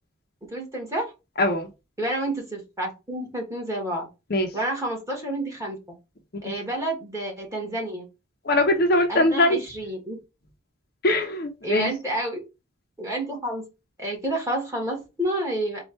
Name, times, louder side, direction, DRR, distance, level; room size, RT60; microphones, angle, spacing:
voice 1, 0.5-1.1 2.0-4.1 4.5-5.8 6.4-8.0 9.1-10.2 11.6-12.4 13.0-13.7 14.0-15.8, right 1 dB, 15° right, 1.6 m, -29 dB
voice 2, 1.4-1.7 4.3-4.5 6.4-6.5 8.5-9.6 11.0-11.9, left 1 dB, 50° left, 0.7 m, -21 dB
4.4 x 2.4 x 4.3 m
head